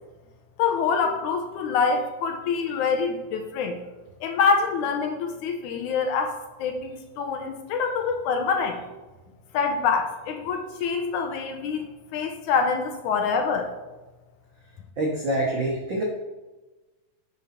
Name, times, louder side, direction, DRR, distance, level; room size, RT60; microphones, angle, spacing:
voice 1, 0.6-3.8 4.2-8.8 9.5-13.7, left 5 dB, 75° left, 4 dB, 2.2 m, -25 dB
voice 2, 15.0-16.0, right 1 dB, 70° right, -2 dB, 1.1 m, -26 dB
8.2 x 5.0 x 5.8 m, 1.2 s
omnidirectional pair, 3.7 m